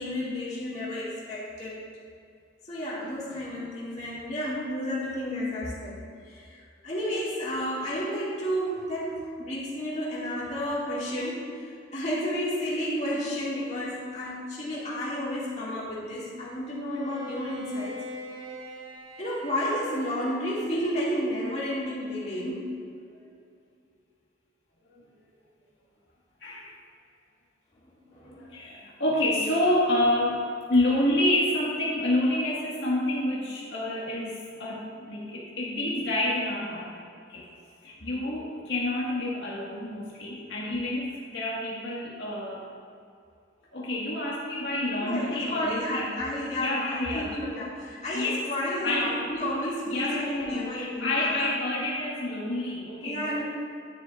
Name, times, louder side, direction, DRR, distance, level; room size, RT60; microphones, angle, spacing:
voice 1, 0.0-1.8 2.7-6.6 6.8-18.0 19.2-22.8 27.8-28.6 45.0-51.4 53.0-53.4, equal, 35° left, -7 dB, 2.2 m, -31 dB
Bowed string instrument, 16.9-21.3, left 1 dB, 80° right, 1.2 m, -43 dB
voice 2, 26.4-26.8 28.4-36.9 37.3-37.4 37.8-42.6 43.7-47.3 48.1-48.4 48.8-49.2 49.9-53.4, left 1 dB, 70° left, -6 dB, 1.8 m, -28 dB
11.0 x 10.0 x 2.5 m, 2.4 s
head